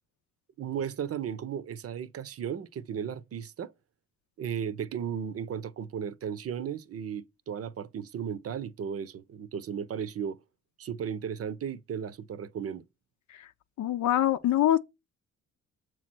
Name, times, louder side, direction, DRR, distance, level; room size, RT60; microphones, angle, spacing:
voice 1, 0.6-3.7 4.4-10.4 10.8-12.8, right 8 dB, 50° right, 0.7 m, -35 dB
voice 2, 13.8-14.8, left 12 dB, 70° left, 0.6 m, -24 dB
7.0 x 3.1 x 6.0 m
cardioid pair, 90°, 30 cm